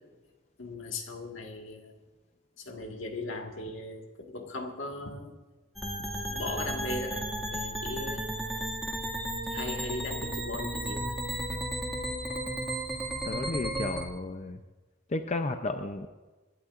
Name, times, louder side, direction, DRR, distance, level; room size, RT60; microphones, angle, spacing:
voice 1, 0.6-1.9 2.6-5.3 6.3-7.2 7.5-8.3 9.5-11.2, left 2 dB, 75° left, 3 dB, 1.7 m, -38 dB
sound 1, 5.8-14.0, right 1 dB, ahead, 2.0 m, -34 dB
voice 2, 13.2-14.6 15.1-16.1, left 2 dB, 35° left, 6 dB, 0.5 m, -33 dB
27.0 x 11.5 x 2.5 m, 1.3 s
head